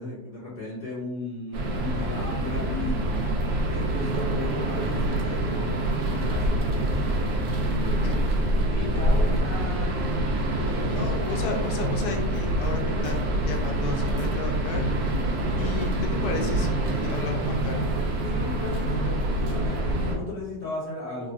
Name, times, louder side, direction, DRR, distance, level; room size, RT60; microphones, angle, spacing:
voice 1, 0.0-3.1 3.7-6.9 7.6-8.2 8.7-10.0 10.5-11.6 18.3-21.3, left 2 dB, 35° left, -9 dB, 1.6 m, -36 dB
sound 1, 1.5-20.2, right 1 dB, 85° right, 1.2 m, -26 dB
voice 2, 10.9-14.8 15.6-15.9 16.2-17.9, left 4 dB, 85° left, 2 dB, 1.2 m, -34 dB
3.6 x 2.4 x 2.4 m, 0.92 s
omnidirectional pair, 1.8 m